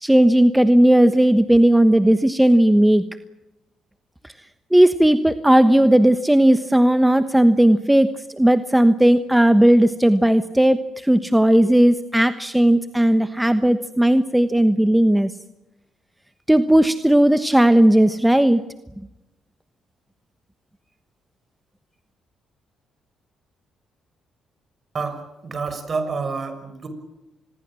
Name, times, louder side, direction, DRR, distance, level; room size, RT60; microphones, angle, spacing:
voice 1, 0.0-3.0 4.7-8.1 8.4-10.8 11.0-15.3 16.5-18.6, right 1 dB, 5° right, 11 dB, 1.2 m, -16 dB
voice 2, 24.9-26.9, right 4 dB, 40° right, 9 dB, 6.3 m, -28 dB
27.0 x 21.0 x 7.7 m, 0.99 s
cardioid pair, 90°, 0 cm